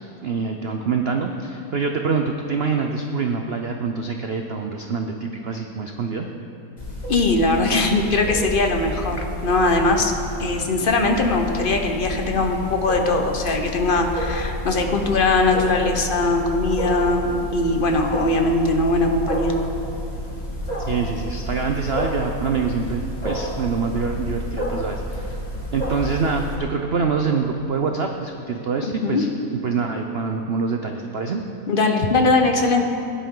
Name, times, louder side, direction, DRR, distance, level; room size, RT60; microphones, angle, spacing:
voice 1, 0.2-6.3 20.9-25.4 25.7-29.3 29.6-31.4, right 5 dB, 85° right, 4 dB, 0.5 m, -25 dB
Wild animals, 6.8-26.5, equal, 25° left, 1.9 m, -30 dB
voice 2, 7.1-10.1 10.4-19.5 29.0-29.2 31.7-32.9, left 2 dB, 40° left, 4 dB, 0.8 m, -20 dB
16.5 x 11.0 x 3.8 m, 2.9 s
omnidirectional pair, 1.9 m